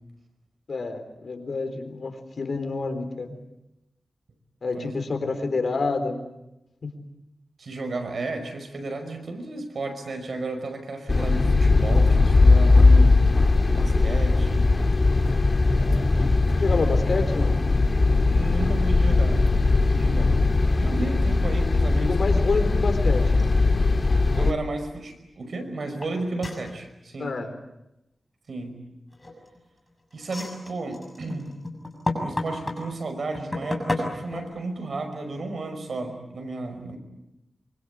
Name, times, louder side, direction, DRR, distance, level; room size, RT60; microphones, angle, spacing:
voice 1, 0.7-3.4 4.6-6.2 6.8-6.9 16.5-17.6 21.9-23.3 27.2-27.5, left 3 dB, 65° left, 7 dB, 3.9 m, -28 dB
voice 2, 7.6-13.2 13.7-14.9 15.7-16.2 18.3-20.4 20.8-22.2 24.2-27.3 28.5-28.8 30.1-31.5 32.2-37.0, right 2 dB, 70° right, 6 dB, 5.3 m, -33 dB
sound 1, 11.1-24.5, left 3 dB, 40° left, 1.7 m, -19 dB
sound 2, 26.0-26.1 26.4-26.7 29.1-29.6 30.2-32.8 33.3-34.4, left 2 dB, 20° left, 6.8 m, -30 dB
25.5 x 24.5 x 8.5 m, 0.90 s
wide cardioid pair, 100°, 0 cm